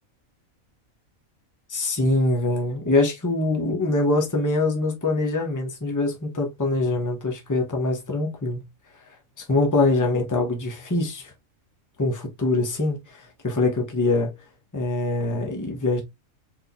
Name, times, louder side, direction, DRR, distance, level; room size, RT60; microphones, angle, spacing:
voice 1, 1.7-8.6 9.4-11.3 12.0-14.3 14.7-16.0, left 2 dB, 15° left, 1.0 m, -24 dB
4.2 x 3.7 x 2.3 m
omnidirectional pair, 1.5 m